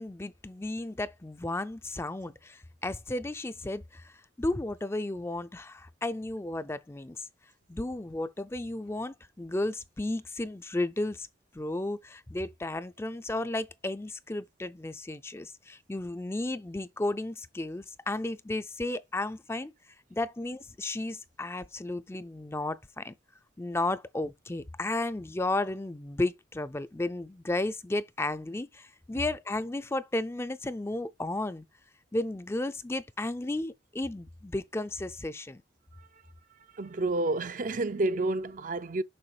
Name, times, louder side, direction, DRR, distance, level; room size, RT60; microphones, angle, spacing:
voice 1, 0.0-4.1 4.4-7.3 7.7-11.3 11.5-19.7 20.1-23.1 23.6-31.6 32.1-35.6, left 2 dB, 15° left, 0.4 m, -33 dB
voice 2, 36.7-39.0, right 2 dB, 45° right, 0.5 m, -30 dB
6.9 x 5.8 x 4.8 m
head